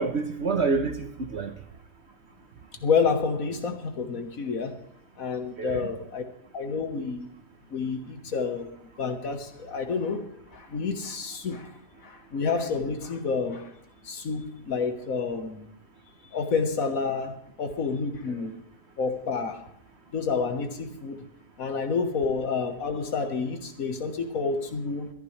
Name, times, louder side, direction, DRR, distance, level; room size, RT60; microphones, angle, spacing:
voice 1, 0.0-1.6 5.6-5.9 18.3-18.6, right 4 dB, 50° right, 7 dB, 1.1 m, -28 dB
voice 2, 2.8-4.8 5.2-6.2 6.5-7.3 7.7-10.2 10.5-11.7 12.0-13.7 14.0-15.7 16.3-18.5 19.0-19.6 20.1-21.2 21.6-25.1, left 5 dB, 60° left, 7 dB, 1.7 m, -29 dB
21.5 x 11.0 x 3.2 m, 0.66 s
omnidirectional pair, 1.7 m